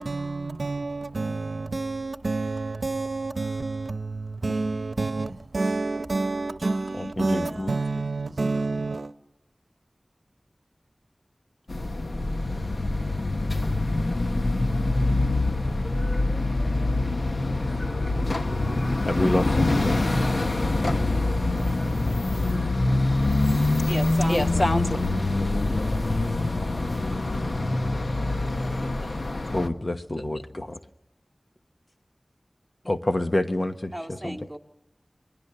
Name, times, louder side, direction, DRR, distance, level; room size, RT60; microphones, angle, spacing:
voice 1, 0.0-9.1, right 3 dB, 85° right, 0.8 m, -29 dB
voice 2, 6.9-7.8 19.0-20.0 24.3-25.0 26.6-26.9 29.5-30.8 32.8-34.4, left 1 dB, 45° left, 1.3 m, -27 dB
sound 1, 11.7-29.7, left 2 dB, 70° left, 1.2 m, -25 dB
voice 3, 23.9-24.7 28.8-29.1 33.9-34.6, right 1 dB, 5° right, 2.6 m, -34 dB
27.5 x 20.5 x 6.8 m
wide cardioid pair, 45°, 0 cm